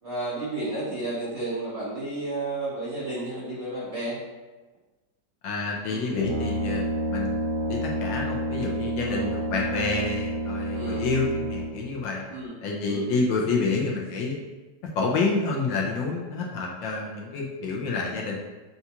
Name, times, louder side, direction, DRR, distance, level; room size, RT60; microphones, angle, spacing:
voice 1, 0.0-4.2 5.9-6.1 9.0-9.3 10.7-11.1 12.3-13.1, right 2 dB, 40° right, -9 dB, 1.1 m, -32 dB
voice 2, 5.4-7.4 7.7-12.3 12.6-14.4 14.8-18.4, left 3 dB, 75° left, -1 dB, 1.3 m, -28 dB
Brass instrument, 6.1-11.9, right 1 dB, 75° right, 1.6 m, -29 dB
6.7 x 2.3 x 2.8 m, 1.2 s
omnidirectional pair, 2.2 m